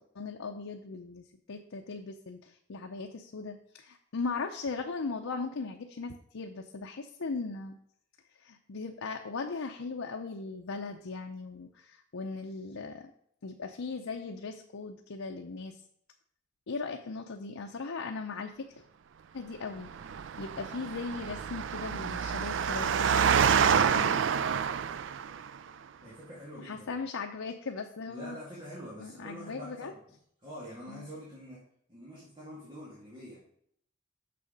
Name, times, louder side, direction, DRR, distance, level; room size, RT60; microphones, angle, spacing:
voice 1, 0.2-7.8 8.4-13.1 13.4-15.8 16.7-18.8 19.3-19.9 20.4-24.2 26.6-28.4 29.0-29.9 30.9-31.1, left 4 dB, 85° left, 3 dB, 0.6 m, -38 dB
Engine, 19.9-25.5, right 7 dB, 65° right, 0.4 m, -28 dB
voice 2, 26.0-27.0 28.1-30.0 30.4-31.6 31.9-33.4, equal, 25° right, -7 dB, 2.2 m, -45 dB
6.8 x 6.3 x 5.1 m, 0.68 s
head